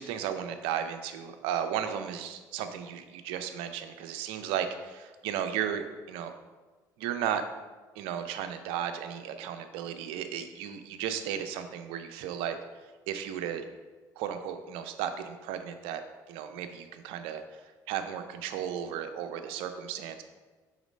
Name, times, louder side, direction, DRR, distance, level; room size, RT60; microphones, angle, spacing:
voice 1, 0.0-6.3 7.0-7.4 8.0-12.6 13.1-13.6 14.2-16.0 16.3-17.6 17.9-20.2, right 9 dB, 75° right, 8 dB, 0.5 m, -34 dB
5.0 x 4.0 x 5.2 m, 1.3 s
hypercardioid pair, 65°, 10 cm